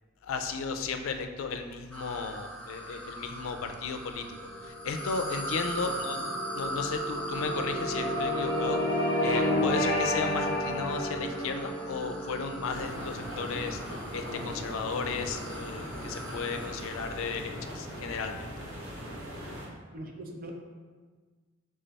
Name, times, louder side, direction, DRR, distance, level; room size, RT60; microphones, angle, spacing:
voice 1, 0.2-4.3 4.6-6.2 6.6-8.8 9.2-13.8 14.1-18.5, left 5 dB, 80° left, 6 dB, 0.4 m, -34 dB
sound 1, 1.9-17.5, right 1 dB, 5° left, 0.6 m, -41 dB
sound 2, 3.8-16.2, left 1 dB, 20° left, 0.9 m, -33 dB
sound 3, 12.7-19.7, equal, 70° right, 0.9 m, -40 dB
voice 2, 19.9-20.5, right 1 dB, 45° right, 2 dB, 0.6 m, -42 dB
3.4 x 3.3 x 4.0 m, 1.4 s
head